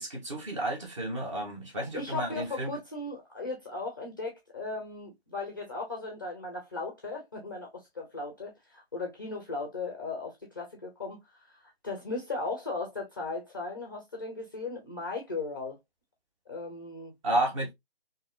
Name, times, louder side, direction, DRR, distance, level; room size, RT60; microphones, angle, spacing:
voice 1, 0.0-2.7 17.2-17.7, right 1 dB, 30° right, 1.2 m, -31 dB
voice 2, 1.9-11.2 11.5-15.8 16.5-17.1, left 3 dB, 20° left, 0.5 m, -37 dB
3.7 x 2.7 x 2.3 m
figure-of-eight pair, 155°, 30 cm